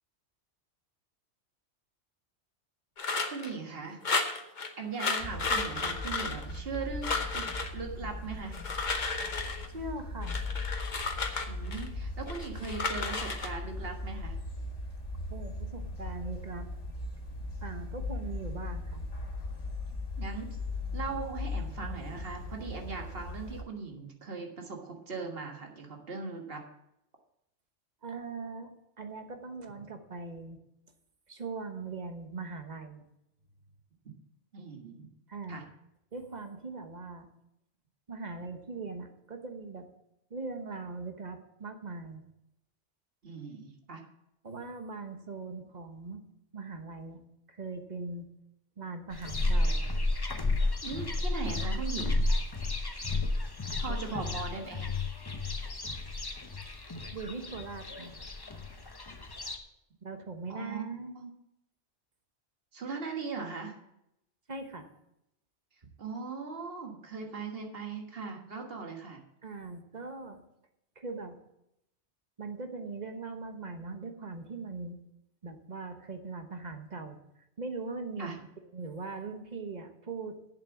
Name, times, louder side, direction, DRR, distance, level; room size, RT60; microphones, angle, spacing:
sound 1, 3.0-3.5 4.0-4.7 5.0-6.8 7.0-7.7 8.4-9.7 10.2-11.9 12.3-13.5, left 4 dB, 40° left, 1.1 m, -33 dB
voice 1, 3.2-4.0 4.8-8.6 11.5-14.4 20.2-20.5 20.9-26.6 34.5-35.1 35.5-35.6 43.2-44.0 50.8-52.2 53.8-54.8 60.5-61.3 62.7-63.8 66.0-69.2 78.2-78.4, right 4 dB, 55° right, 2 dB, 1.7 m, -39 dB
sound 2, 5.2-23.6, left 2 dB, 80° left, 2.2 m, -38 dB
voice 2, 9.7-10.4 15.3-16.7 17.6-19.0 28.0-28.7 29.0-30.6 31.3-33.0 35.3-35.6 36.1-37.3 38.1-39.9 40.3-42.2 44.4-46.2 46.5-47.2 47.5-48.3 48.8-49.9 53.9-54.2 57.1-58.1 60.0-61.2 64.5-64.9 69.4-70.4 71.0-71.4 72.4-75.0 75.4-77.2 77.6-78.3 78.7-80.4, right 3 dB, 40° right, 6 dB, 1.2 m, -40 dB
sound 3, 49.1-59.6, left 2 dB, 20° left, 0.8 m, -32 dB
8.3 x 7.4 x 7.2 m, 0.82 s
omnidirectional pair, 1.2 m